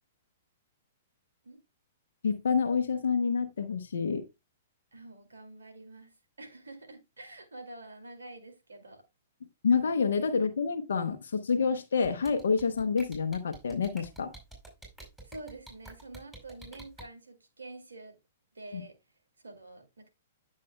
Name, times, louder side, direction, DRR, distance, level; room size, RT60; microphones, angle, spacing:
voice 1, 2.2-4.2 9.6-14.3 18.7-18.8, left 5 dB, 75° left, 0.8 m, -28 dB
voice 2, 4.9-9.0 15.2-18.2 18.5-18.9 19.4-20.1, right 2 dB, 85° right, 2.3 m, -47 dB
sound 1, 12.0-17.0, right 1 dB, 5° right, 5.3 m, -48 dB
9.8 x 7.4 x 2.2 m
hypercardioid pair, 120°, 0 cm